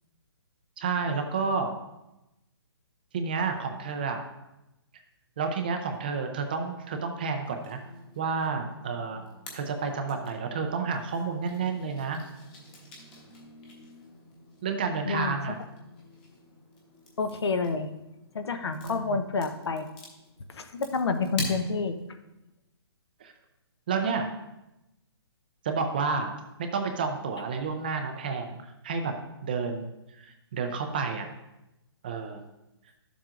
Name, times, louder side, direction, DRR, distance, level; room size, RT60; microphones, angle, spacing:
voice 1, 0.8-1.7 3.1-4.2 5.4-7.8 8.2-9.2 9.5-12.2 14.6-15.6 18.7-19.2 23.2-23.3 23.9-24.3 25.6-26.4 26.7-29.1 29.4-29.9 30.1-31.3 32.0-32.4, right 5 dB, 20° right, 5 dB, 0.5 m, -30 dB
sound 1, 7.4-22.1, left 1 dB, 20° left, 1.2 m, -45 dB
voice 2, 15.0-15.5 17.2-17.9 18.3-19.9 20.5-21.9, left 4 dB, 70° left, 8 dB, 0.9 m, -29 dB
12.0 x 7.4 x 2.5 m, 0.94 s
hypercardioid pair, 170°, 14 cm